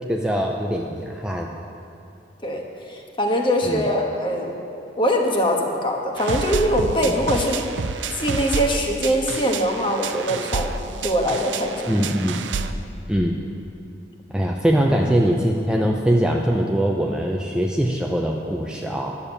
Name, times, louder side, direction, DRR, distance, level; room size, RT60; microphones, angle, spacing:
voice 1, 0.1-1.5 3.6-3.8 7.0-7.1 11.9-12.5 13.1-13.4 14.3-19.2, equal, 5° right, 0 dB, 0.5 m, -22 dB
voice 2, 2.9-4.6 5.0-7.7 8.1-10.7 11.0-12.0 15.1-15.2, equal, 25° left, 1 dB, 1.3 m, -22 dB
sound 1, 6.2-12.7, right 4 dB, 75° right, 0.5 m, -29 dB
11.0 x 7.0 x 8.2 m, 2.7 s
head